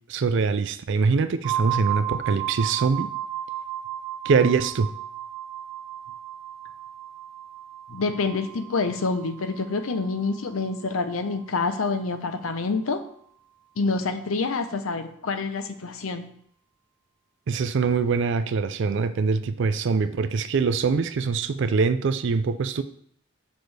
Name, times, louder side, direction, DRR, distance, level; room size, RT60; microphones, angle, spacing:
voice 1, 0.1-3.1 4.2-4.9 17.5-22.8, right 5 dB, 60° right, 12 dB, 0.4 m, -23 dB
sound 1, 1.4-11.1, right 10 dB, 20° right, 0.7 m, -34 dB
voice 2, 7.9-13.0 13.8-16.3, left 4 dB, 85° left, 8 dB, 0.7 m, -27 dB
6.2 x 5.2 x 3.3 m, 0.65 s
head